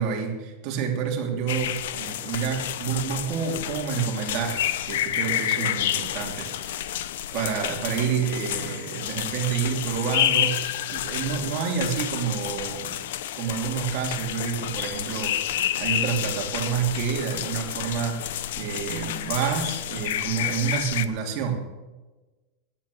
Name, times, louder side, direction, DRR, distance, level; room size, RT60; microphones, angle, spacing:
voice 1, 0.0-6.8 7.3-13.0 13.4-21.6, right 7 dB, 45° right, 1 dB, 3.1 m, -29 dB
sound 1, 1.5-21.1, left 12 dB, 80° left, 0.8 m, -29 dB
13.0 x 10.5 x 7.0 m, 1.2 s
supercardioid pair, 160°, 0 cm